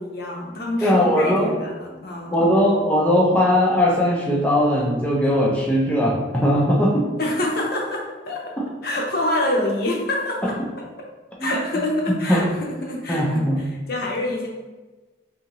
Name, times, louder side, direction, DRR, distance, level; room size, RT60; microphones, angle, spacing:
voice 1, 0.0-2.3 7.2-8.6 8.8-10.9 11.4-13.4 13.9-14.5, left 1 dB, 50° left, -1 dB, 0.7 m, -26 dB
voice 2, 0.8-1.5 2.3-7.1 10.4-10.5 11.4-11.6 12.3-12.4 13.1-13.6, equal, 5° left, -3 dB, 0.5 m, -19 dB
3.7 x 2.8 x 2.9 m, 1.2 s
head